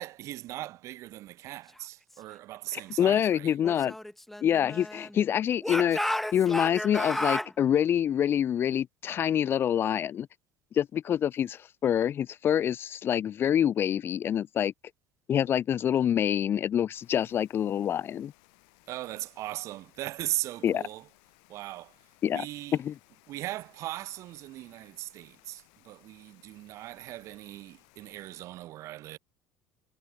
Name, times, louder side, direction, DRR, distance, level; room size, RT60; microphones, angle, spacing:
voice 1, 0.0-3.5 18.9-21.0 21.5-21.9 22.3-22.8 23.3-29.2, right 15 dB, 60° right, 1.0 m, -38 dB
voice 2, 2.7-3.9 4.4-6.0 6.3-10.3 10.8-14.7 15.3-18.3 20.6-20.8 22.2-22.4 22.7-23.0, left 9 dB, 40° left, 0.7 m, -26 dB
Speech / Shout, 3.6-5.2 5.6-7.5, left 1 dB, 5° left, 0.7 m, -32 dB
Rain, 16.9-28.4, left 40 dB or more, 80° left, 7.7 m, -62 dB
supercardioid pair, 100°, 6 cm